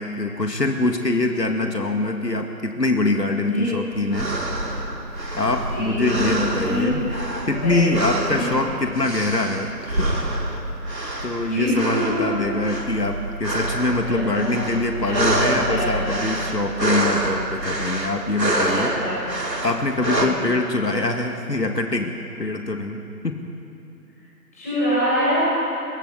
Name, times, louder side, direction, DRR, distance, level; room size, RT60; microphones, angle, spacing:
voice 1, 0.0-4.3 5.4-7.0 7.5-9.7 10.0-10.1 11.2-18.9 19.6-23.4, left 2 dB, 75° left, 4 dB, 2.3 m, -24 dB
voice 2, 3.4-3.7 5.7-6.2 6.5-6.9 7.4-8.4 11.4-12.5 14.0-14.5 15.0-16.2 18.6-19.1 20.0-20.3 24.5-25.4, equal, 10° left, -11 dB, 6.2 m, -25 dB
sound 1, 3.9-20.3, right 1 dB, 85° right, 3.9 m, -27 dB
23.0 x 20.5 x 8.4 m, 2.8 s
figure-of-eight pair, 175°, 50 cm